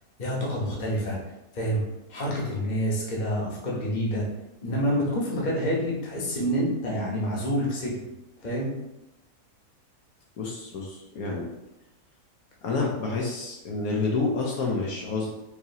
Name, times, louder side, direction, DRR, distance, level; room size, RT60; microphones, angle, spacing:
voice 1, 0.2-1.2 1.5-1.8 2.1-4.2 4.6-8.0 8.4-8.7, equal, 35° left, -4 dB, 0.9 m, -27 dB
voice 2, 10.4-11.5 12.6-15.3, left 3 dB, 70° left, -1 dB, 1.1 m, -28 dB
4.7 x 2.8 x 2.8 m, 0.92 s
omnidirectional pair, 1.7 m